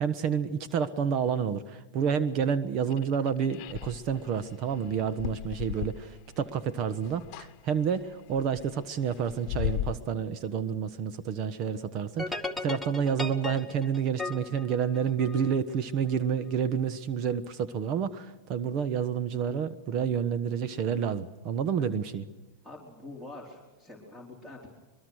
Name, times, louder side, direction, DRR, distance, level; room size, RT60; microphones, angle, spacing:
voice 1, 0.0-22.2, right 7 dB, 45° right, 12 dB, 1.2 m, -29 dB
sound 1, 2.9-6.6 6.8-7.5 7.9-9.9, left 15 dB, 50° left, 1.1 m, -37 dB
sound 2, 12.2-15.6, left 2 dB, 5° left, 2.0 m, -36 dB
voice 2, 22.6-24.7, left 2 dB, 10° right, 0 dB, 4.5 m, -45 dB
23.0 x 22.0 x 6.4 m, 1.3 s
supercardioid pair, 120°, 0 cm